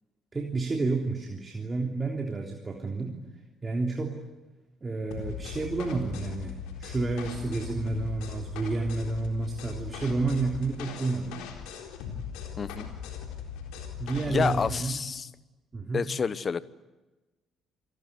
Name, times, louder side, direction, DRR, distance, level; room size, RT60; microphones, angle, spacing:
voice 1, 0.3-3.2 3.6-4.2 4.8-11.4 14.0-15.0 15.7-16.1, right 3 dB, 25° right, 1 dB, 3.4 m, -30 dB
sound 1, 5.1-14.8, left 7 dB, 65° left, 3.8 m, -39 dB
voice 2, 12.6-12.9 14.3-15.3 15.9-16.6, left 5 dB, 35° left, 18 dB, 1.1 m, -29 dB
27.5 x 21.0 x 9.9 m, 1.1 s
figure-of-eight pair, 45°, 0 cm